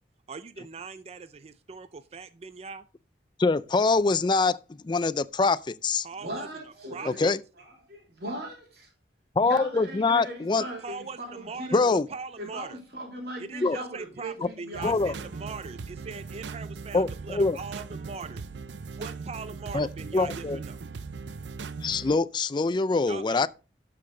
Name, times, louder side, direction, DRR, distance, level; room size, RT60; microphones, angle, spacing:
voice 1, 0.3-2.8 6.0-7.4 10.8-12.8 13.4-18.4 18.9-20.8 23.0-23.5, right 4 dB, 35° right, 0.4 m, -41 dB
voice 2, 3.4-6.1 7.1-7.4 9.4-10.6 11.7-12.1 13.6-13.8 14.8-15.1 16.9-17.6 19.7-19.9 20.1-20.6 21.8-23.5, left 3 dB, 25° left, 0.4 m, -24 dB
voice 3, 6.2-7.2 7.6-8.9 9.4-15.3, right 1 dB, 60° right, 3.2 m, -39 dB
sound 1, 14.7-22.2, right 4 dB, 85° right, 0.6 m, -39 dB
13.0 x 5.8 x 3.8 m
head